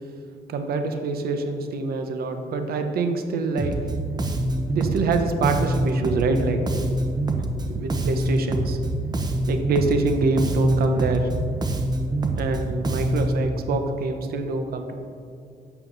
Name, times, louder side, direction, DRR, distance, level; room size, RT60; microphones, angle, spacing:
voice 1, 0.5-3.8 4.7-6.6 6.9-7.0 7.7-8.8 9.5-11.3 12.3-15.0, right 3 dB, 75° right, 6 dB, 0.8 m, -25 dB
Bass guitar, 3.6-13.5, right 1 dB, 25° right, 0.8 m, -25 dB
11.5 x 8.0 x 3.9 m, 2.5 s
cardioid pair, 145°, 16 cm